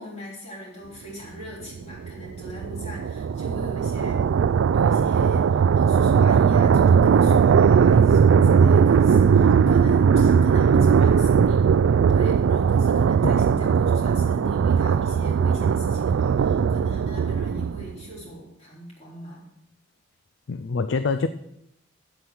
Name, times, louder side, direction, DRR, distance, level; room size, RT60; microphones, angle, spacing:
voice 1, 0.0-4.2 4.7-11.6 12.1-19.5, equal, 35° left, -4 dB, 3.6 m, -40 dB
sound 1, 1.8-18.0, right 6 dB, 80° right, 0.3 m, -19 dB
voice 2, 20.5-21.3, left 4 dB, 65° left, 12 dB, 0.4 m, -25 dB
8.6 x 8.0 x 6.0 m, 0.78 s
head